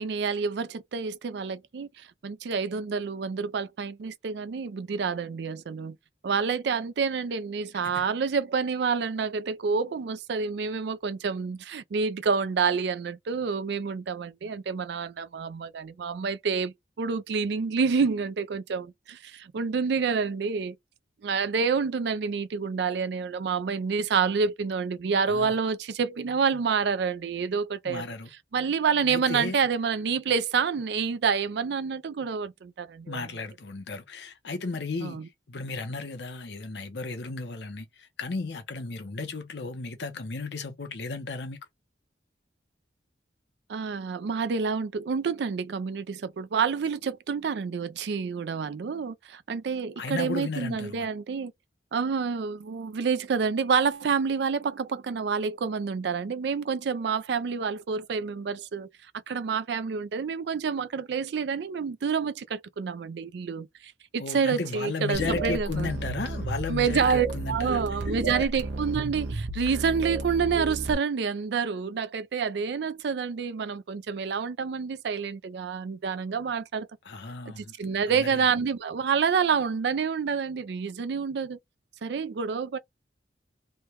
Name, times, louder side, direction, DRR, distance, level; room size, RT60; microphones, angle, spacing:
voice 1, 0.0-6.0 6.2-20.8 21.2-28.1 28.5-33.3 35.0-35.3 43.7-51.5 51.9-58.9 59.3-65.9 66.7-76.9 77.5-81.6 82.0-82.8, right 5 dB, 65° right, 0.4 m, -28 dB
voice 2, 27.8-28.3 29.1-29.6 33.1-35.2 35.5-41.6 50.0-51.1 64.2-67.8 68.3-68.4 77.0-77.7 78.1-78.4, left 3 dB, 65° left, 0.8 m, -34 dB
sound 1, 65.1-70.9, right 2 dB, 80° right, 0.8 m, -32 dB
3.2 x 2.2 x 2.9 m
head